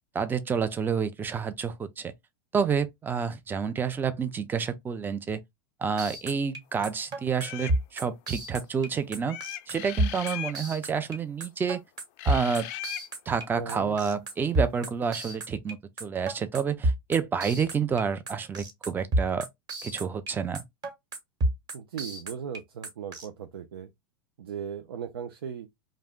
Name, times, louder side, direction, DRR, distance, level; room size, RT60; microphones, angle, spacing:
voice 1, 0.1-2.1 2.5-5.4 5.8-9.4 9.7-11.8 12.2-12.7 13.3-19.5 19.8-20.6, right 6 dB, 15° right, 0.4 m, -29 dB
sound 1, 6.0-23.3, right 1 dB, 35° right, 1.1 m, -29 dB
sound 2, 7.4-7.8 9.3-10.6 12.2-13.1, left 13 dB, 50° left, 0.4 m, -38 dB
voice 2, 13.5-14.0 21.7-23.9 24.4-25.7, right 8 dB, 90° right, 0.5 m, -37 dB
2.5 x 2.1 x 3.5 m
hypercardioid pair, 115°, 12 cm